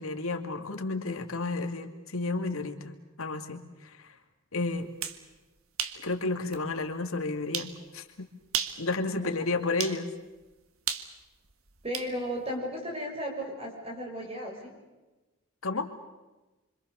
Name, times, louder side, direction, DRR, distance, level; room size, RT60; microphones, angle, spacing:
voice 1, 0.0-4.2 4.5-4.9 6.0-8.3 8.8-10.1 15.6-15.9, left 3 dB, 85° left, 6 dB, 2.3 m, -32 dB
sound 1, 4.8-5.2 5.8-6.0 6.5-6.6 7.5-7.8 8.4-8.8 9.8-10.0 10.9-12.1, right 8 dB, 85° right, 1.7 m, -33 dB
voice 2, 11.8-14.8, equal, 30° right, 1 dB, 6.6 m, -35 dB
26.5 x 26.0 x 6.9 m, 1.1 s
head